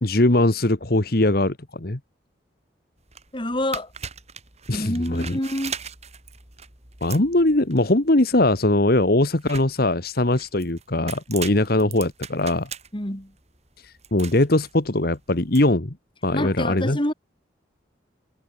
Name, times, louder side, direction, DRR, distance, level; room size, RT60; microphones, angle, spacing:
voice 1, 0.0-2.0 4.7-5.4 7.0-12.7 13.8-16.0 16.2-17.0, left 1 dB, 50° left, 1.5 m, -21 dB
sound 1, 3.0-15.6, right 7 dB, 35° right, 6.1 m, -40 dB
voice 2, 3.3-3.9 4.7-5.7 12.9-13.3 16.3-17.1, left 1 dB, 25° left, 3.3 m, -27 dB
head